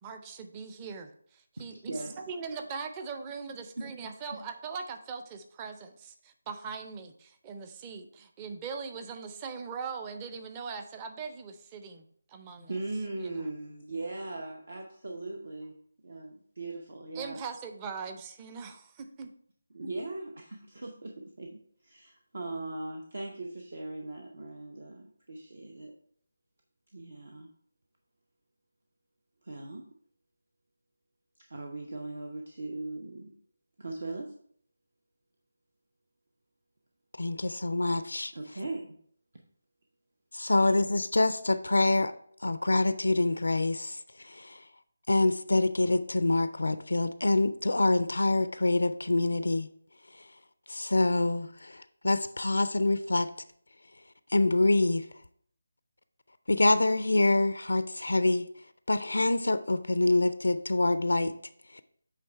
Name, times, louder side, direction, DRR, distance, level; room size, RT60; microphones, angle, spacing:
voice 1, 0.0-12.7 13.2-13.5 17.1-19.3, right 5 dB, 20° right, 0.5 m, -41 dB
voice 2, 1.9-2.2 3.8-3.9 4.3-4.4 12.6-15.8 16.0-17.4 19.7-25.9 26.9-27.5 29.4-29.9 31.4-33.3 33.8-34.4 37.4-37.5 38.3-39.0 40.6-40.9, right 2 dB, 60° right, 0.8 m, -39 dB
voice 3, 37.2-38.3 40.3-42.1 42.4-44.6 45.1-49.7 50.7-53.3 54.3-55.1 56.5-58.5 58.9-61.3 61.7-61.8, left 2 dB, 75° left, 0.4 m, -26 dB
8.4 x 3.2 x 4.4 m
figure-of-eight pair, 160°, 0 cm